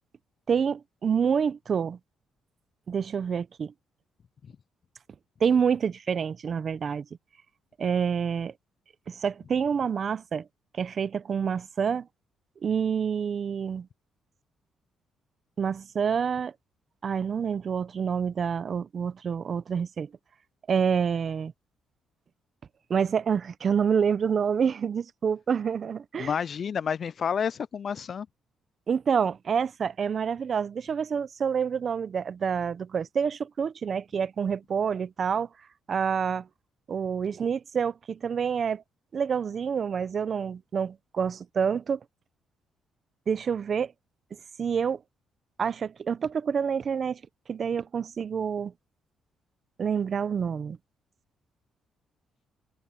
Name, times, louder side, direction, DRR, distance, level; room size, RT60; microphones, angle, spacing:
voice 1, 0.5-2.0 2.9-3.7 5.4-7.0 7.8-8.5 9.1-10.5 10.8-12.1 12.6-13.9 15.6-16.5 17.0-20.1 20.7-21.5 22.9-26.3 28.9-35.5 35.9-36.5 36.9-38.8 39.1-42.0 43.3-43.9 44.6-45.0 45.6-47.2 47.5-48.7 49.8-50.8, right 7 dB, 50° right, 0.8 m, -27 dB
voice 2, 26.2-28.3, left 7 dB, 50° left, 0.4 m, -30 dB
cardioid pair, 90°, 0 cm